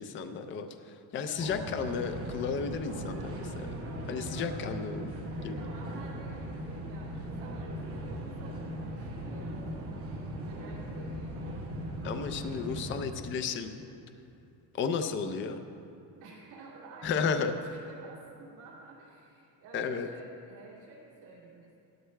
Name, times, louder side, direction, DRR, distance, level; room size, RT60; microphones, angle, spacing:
voice 1, 0.0-3.7 4.1-5.2 5.4-5.6 12.0-13.7 14.7-15.6 17.0-17.5 19.7-20.1, left 6 dB, 30° left, 8 dB, 0.5 m, -33 dB
voice 2, 1.2-1.5 4.1-4.5 5.5-10.1 10.5-11.5 16.2-21.8, right 3 dB, 65° right, -6 dB, 2.5 m, -51 dB
sound 1, 1.4-13.0, right 1 dB, 30° right, 2.1 m, -38 dB
17.0 x 13.0 x 2.2 m, 2.8 s
cardioid pair, 150°, 44 cm